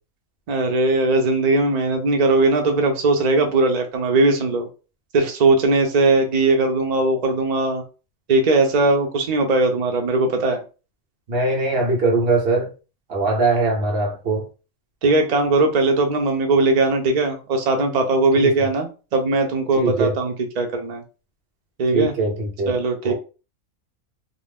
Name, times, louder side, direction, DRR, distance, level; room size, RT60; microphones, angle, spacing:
voice 1, 0.5-4.7 5.1-7.8 8.3-10.6 15.0-21.0 21.8-22.1 22.7-23.1, right 2 dB, 85° right, 0.3 m, -19 dB
voice 2, 11.3-12.7 13.1-14.4 18.3-18.5 19.8-20.1 21.9-22.7 23.0-23.1, right 3 dB, 50° right, 0.9 m, -21 dB
2.5 x 2.0 x 3.3 m
omnidirectional pair, 1.4 m